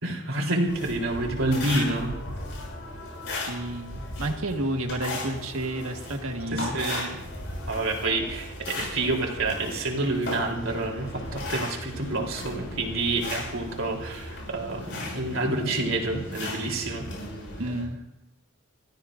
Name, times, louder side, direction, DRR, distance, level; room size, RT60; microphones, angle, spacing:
voice 1, 0.0-2.1 6.5-7.2 7.7-17.0, right 2 dB, 70° right, 0 dB, 3.5 m, -28 dB
sound 1, 0.7-17.8, left 2 dB, 55° left, 7.3 m, -36 dB
voice 2, 3.4-6.8 17.6-18.0, right 1 dB, 85° right, 4 dB, 1.6 m, -31 dB
29.5 x 14.0 x 2.6 m, 0.84 s
head